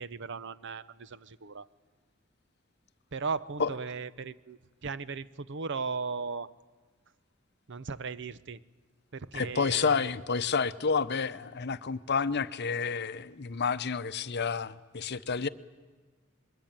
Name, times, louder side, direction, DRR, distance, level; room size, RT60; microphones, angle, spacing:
voice 1, 0.0-1.7 3.1-6.5 7.7-8.6 9.1-10.1, right 4 dB, 55° right, 16 dB, 0.7 m, -37 dB
voice 2, 9.3-15.5, left 5 dB, 50° left, 13 dB, 0.8 m, -30 dB
25.5 x 22.0 x 8.9 m, 1.4 s
head